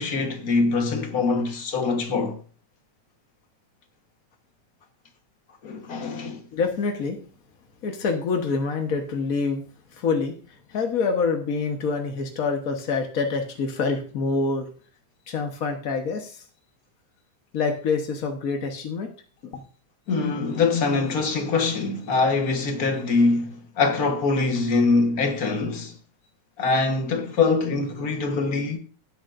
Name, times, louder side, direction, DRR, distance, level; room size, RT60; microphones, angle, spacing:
voice 1, 0.0-2.4 5.6-6.4 20.1-25.9 26.6-28.8, left 3 dB, 45° left, 1.2 m, -23 dB
voice 2, 6.5-7.2 7.8-9.6 9.9-14.7 15.3-16.4 17.5-19.1 19.5-19.6, left 4 dB, 70° left, 0.8 m, -26 dB
17.0 x 8.8 x 2.6 m
omnidirectional pair, 3.3 m